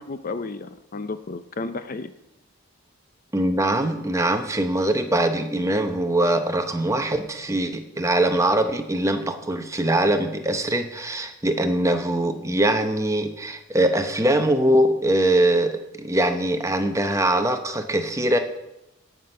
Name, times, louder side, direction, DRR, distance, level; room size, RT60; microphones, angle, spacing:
voice 1, 0.0-2.1, left 3 dB, 40° left, 11 dB, 0.5 m, -32 dB
voice 2, 3.3-18.4, right 1 dB, 15° right, 6 dB, 0.7 m, -22 dB
17.5 x 6.0 x 5.5 m, 0.90 s
head